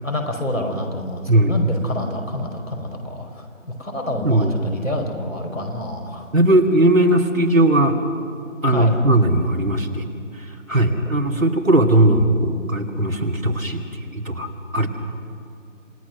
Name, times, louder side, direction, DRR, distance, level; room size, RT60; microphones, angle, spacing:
voice 1, 0.0-3.5 3.8-6.3 8.7-8.9 10.8-11.4 14.8-14.9, left 1 dB, 80° left, 2 dB, 5.0 m, -28 dB
voice 2, 4.2-4.5 6.3-7.9 8.6-10.1 10.7-13.8 14.1-14.9, right 1 dB, 80° right, 3 dB, 2.7 m, -18 dB
27.0 x 18.5 x 6.3 m, 2.6 s
figure-of-eight pair, 160°, 40 cm